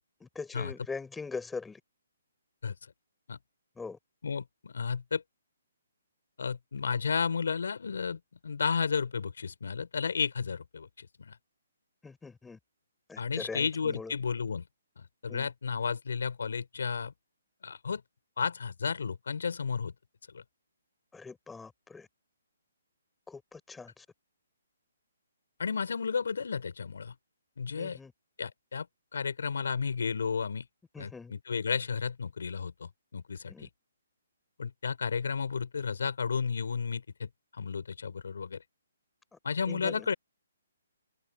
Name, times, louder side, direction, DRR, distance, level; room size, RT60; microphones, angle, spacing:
voice 1, 0.2-1.8 3.8-4.0 12.0-12.6 13.1-14.1 15.3-15.5 21.1-22.1 23.3-24.1 27.8-28.1 30.9-31.3 33.5-33.7 39.3-39.4 39.7-40.1, left 4 dB, 5° left, 5.3 m, -42 dB
voice 2, 4.2-5.2 6.4-11.4 13.2-14.6 15.0-17.1 17.6-18.0 18.4-19.9 20.3-20.4 25.6-27.1 27.6-28.0 28.4-28.9 29.1-30.7 31.0-33.7 34.6-37.3 37.6-38.6 39.4-40.1, left 5 dB, 70° left, 5.6 m, -33 dB
hypercardioid pair, 170°, 0 cm